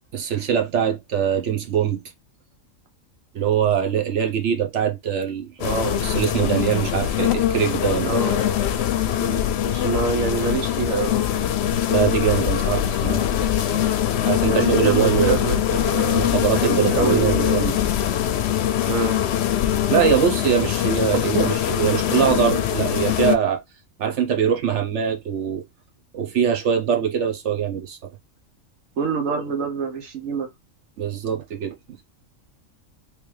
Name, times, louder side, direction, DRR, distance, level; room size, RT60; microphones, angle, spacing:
voice 1, 0.1-2.0 3.3-5.5 6.0-8.2 11.9-13.2 14.2-15.4 16.1-17.7 19.9-23.6 24.0-25.6 26.1-28.0 31.0-31.7, right 8 dB, 65° right, 1.1 m, -22 dB
sound 1, 5.6-23.4, left 10 dB, 65° left, 0.7 m, -22 dB
voice 2, 5.6-6.0 7.9-8.6 9.2-11.5 14.5-17.7 18.9-19.2 21.3-21.6 29.0-30.5, right 5 dB, 85° right, 1.3 m, -26 dB
3.4 x 3.1 x 3.2 m
omnidirectional pair, 1.4 m